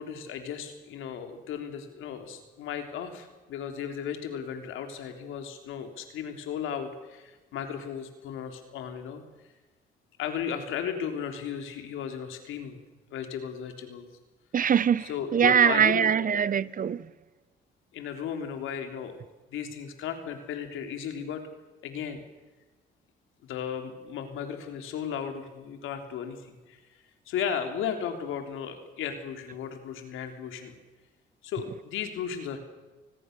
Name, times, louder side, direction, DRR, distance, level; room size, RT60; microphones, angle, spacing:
voice 1, 0.0-9.2 10.2-12.8 13.1-14.1 15.0-16.5 17.9-19.2 19.5-21.4 21.8-22.2 23.4-26.8 27.3-30.8 31.4-32.6, left 8 dB, 90° left, 3.5 m, -35 dB
voice 2, 14.5-17.0, right 8 dB, 45° right, 0.8 m, -23 dB
29.5 x 20.5 x 6.8 m
cardioid pair, 90°, 20 cm